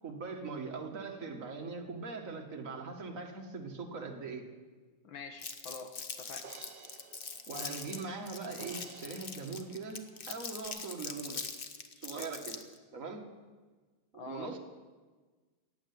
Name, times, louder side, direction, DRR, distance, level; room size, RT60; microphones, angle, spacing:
voice 1, 0.0-4.5 7.5-11.4 12.0-12.6 12.9-13.3 14.1-14.6, right 4 dB, 40° right, 3 dB, 1.8 m, -41 dB
voice 2, 5.0-6.5 14.1-14.6, left 4 dB, 65° left, 6 dB, 1.8 m, -46 dB
Crumpling crinkling, 5.4-12.8, left 5 dB, 50° left, 0.6 m, -42 dB
sound 1, 5.7-5.8 6.4-10.2 10.6-10.7, right 5 dB, 90° right, 0.4 m, -53 dB
15.0 x 9.4 x 9.4 m, 1.4 s
omnidirectional pair, 2.4 m